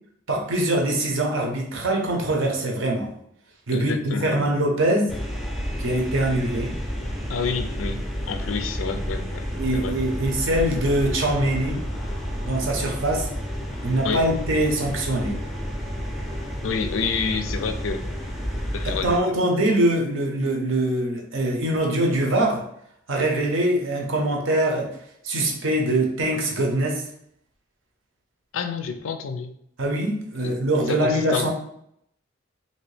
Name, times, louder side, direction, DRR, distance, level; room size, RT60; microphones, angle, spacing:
voice 1, 0.3-3.1 3.7-5.1 5.8-6.8 9.6-11.8 12.4-13.3 13.8-15.4 18.8-22.6 23.1-25.0 25.2-27.0 29.8-31.5, right 1 dB, 75° right, 1 dB, 0.7 m, -23 dB
voice 2, 3.7-4.5 7.3-8.0 8.3-9.5 9.7-9.9 14.0-14.2 16.6-18.0 18.7-19.2 28.5-29.5 30.4-30.5 30.9-31.5, left 5 dB, 75° left, 7 dB, 0.4 m, -28 dB
sound 1, 5.1-19.2, equal, ahead, 0.4 m, -30 dB
3.0 x 2.7 x 3.2 m, 0.71 s
head